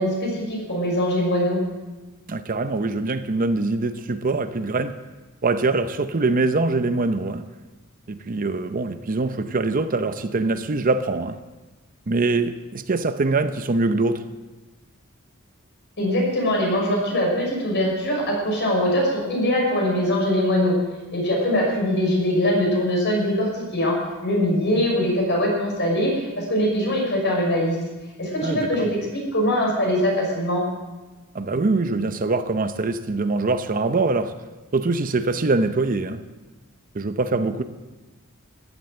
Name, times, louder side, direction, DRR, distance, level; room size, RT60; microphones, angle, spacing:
voice 1, 0.0-1.6 16.0-20.8 21.1-27.8 28.2-30.6, equal, 55° left, 5.8 m, -22 dB
voice 2, 2.3-5.0 5.4-7.4 8.1-11.4 12.1-14.2 28.4-28.9 31.3-34.3 34.7-36.2 36.9-37.6, right 3 dB, 40° right, 0.6 m, -23 dB
14.5 x 11.0 x 7.7 m
head